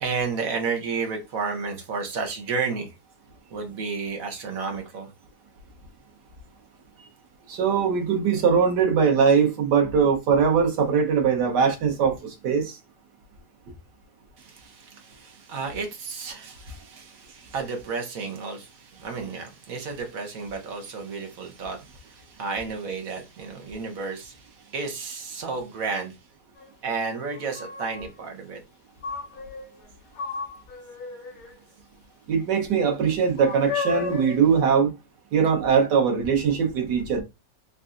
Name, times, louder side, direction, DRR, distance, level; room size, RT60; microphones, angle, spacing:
voice 1, 0.0-2.9 3.5-5.1 14.4-26.3 26.8-28.6, right 4 dB, 60° right, 1.3 m, -32 dB
voice 2, 7.5-12.8 32.3-34.9 35.3-37.2, right 6 dB, 85° right, 1.6 m, -21 dB
sound 1, 26.6-26.7 27.3-28.1 29.0-29.9 30.2-31.6 33.4-34.5, left 5 dB, 60° left, 1.4 m, -34 dB
4.0 x 3.4 x 2.5 m
omnidirectional pair, 1.8 m